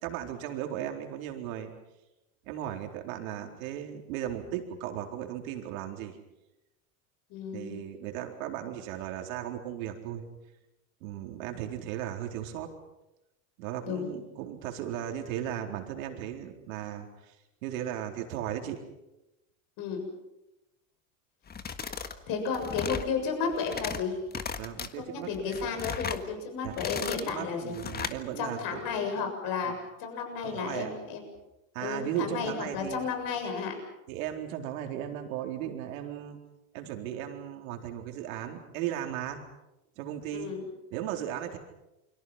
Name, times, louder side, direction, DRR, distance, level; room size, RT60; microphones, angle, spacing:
voice 1, 0.0-1.7 2.5-6.2 7.5-10.2 11.0-12.7 13.6-17.1 17.6-18.8 24.6-25.7 26.6-26.8 27.2-28.8 29.6-29.7 30.4-30.9 31.7-33.1 34.1-36.4 36.7-39.4 40.0-40.5 40.9-41.6, right 11 dB, 75° right, 3 dB, 4.2 m, -36 dB
voice 2, 7.3-7.8 13.8-14.2 19.8-20.1 22.3-24.2 25.0-28.1 28.4-29.7 30.0-31.3 31.8-33.8 40.3-40.7, left 5 dB, 55° left, 5 dB, 7.2 m, -33 dB
sound 1, 21.5-22.2 22.5-23.1 23.5-24.0 24.3-24.9 25.3-26.2 26.6-27.3 27.7-28.2, left 6 dB, 20° left, 1.6 m, -36 dB
29.0 x 24.0 x 5.8 m, 0.95 s
supercardioid pair, 115°, 41 cm